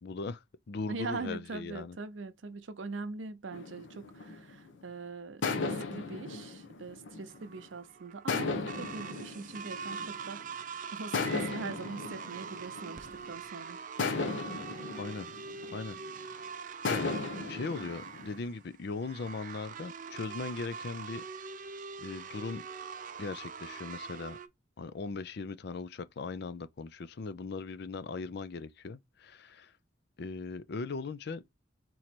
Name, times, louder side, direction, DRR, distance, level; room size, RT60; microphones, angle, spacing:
voice 1, 0.0-2.0 15.0-15.3 15.7-16.0 16.2-16.5 16.9-17.1 17.5-21.2 22.0-22.6 23.2-24.4 24.8-29.7 30.2-31.4, left 4 dB, 60° left, 0.5 m, -39 dB
voice 2, 0.9-10.4 10.7-13.8, right 3 dB, 85° right, 0.6 m, -42 dB
sound 1, 3.5-4.8 5.4-7.7 8.3-10.4 11.1-13.4 14.0-16.2 16.8-18.4, left 4 dB, 80° left, 0.9 m, -36 dB
sound 2, 7.3-24.5, right 6 dB, 45° right, 0.5 m, -43 dB
3.8 x 3.1 x 4.3 m
head